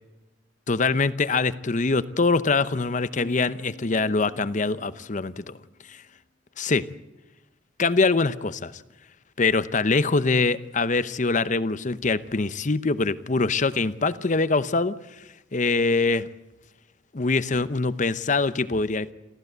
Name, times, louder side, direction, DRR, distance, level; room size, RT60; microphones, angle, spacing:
voice 1, 0.7-5.6 5.9-6.0 6.6-6.8 7.8-8.7 9.4-15.2 15.5-16.3 17.1-19.1, left 3 dB, 45° left, 15 dB, 0.8 m, -24 dB
sound 1, 3.2-5.6, left 1 dB, 60° left, 1.5 m, -46 dB
27.0 x 15.0 x 8.1 m, 1.1 s
head